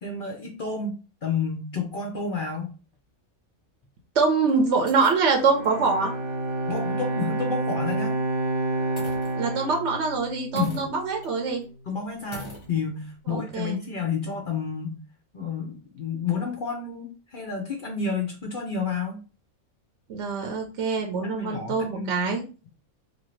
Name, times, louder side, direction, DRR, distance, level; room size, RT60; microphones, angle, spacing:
voice 1, 0.0-2.7 6.7-8.1 10.5-10.8 11.9-15.0 15.3-19.2 21.2-22.1, left 5 dB, 60° left, 2 dB, 0.5 m, -30 dB
sound 1, 2.9-3.0 3.8-3.9 4.4-5.8 6.3-6.4 6.8-6.9 9.0-9.8 10.5-11.3 11.6-11.7 12.3-12.7, left 1 dB, 25° left, 0.8 m, -43 dB
voice 2, 4.2-6.1 9.4-11.6 13.3-13.8 20.1-22.4, right 4 dB, 60° right, 2 dB, 0.8 m, -24 dB
Bowed string instrument, 5.4-10.8, right 2 dB, 85° right, 1.3 m, -29 dB
2.7 x 2.6 x 3.1 m, 0.35 s
omnidirectional pair, 1.4 m